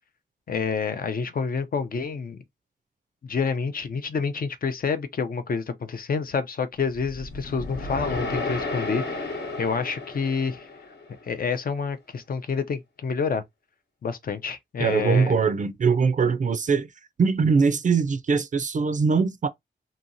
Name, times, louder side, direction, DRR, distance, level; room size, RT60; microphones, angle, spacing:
voice 1, 0.5-2.4 3.2-10.7 11.2-13.4 14.0-15.3, left 5 dB, 55° left, 0.5 m, -28 dB
sound 1, 6.9-11.2, left 3 dB, 75° left, 1.0 m, -33 dB
voice 2, 14.8-16.9 17.2-19.5, right 5 dB, 45° right, 0.4 m, -22 dB
2.9 x 2.7 x 2.6 m
wide cardioid pair, 120°, 18 cm